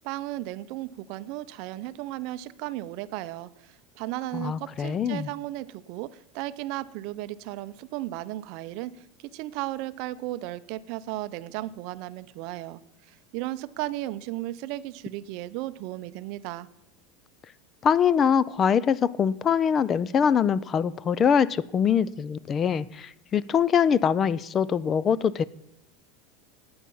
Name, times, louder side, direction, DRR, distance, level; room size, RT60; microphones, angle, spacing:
voice 1, 0.0-12.8 13.1-16.7, right 16 dB, 50° right, 14 dB, 0.5 m, -35 dB
voice 2, 4.3-5.3 17.8-25.4, left 7 dB, 25° left, 20 dB, 0.3 m, -23 dB
12.5 x 8.7 x 5.5 m, 0.85 s
supercardioid pair, 160°, 0 cm